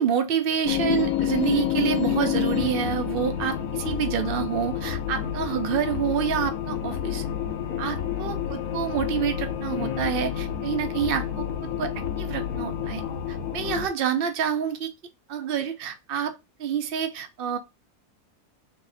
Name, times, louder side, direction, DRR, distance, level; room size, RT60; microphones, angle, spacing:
voice 1, 0.0-7.2 7.8-11.9 12.2-14.9 15.3-16.3 16.6-17.6, right 8 dB, 70° right, 0.5 m, -28 dB
sound 1, 0.7-13.9, left 10 dB, 70° left, 1.2 m, -29 dB
3.4 x 3.1 x 3.8 m
omnidirectional pair, 1.7 m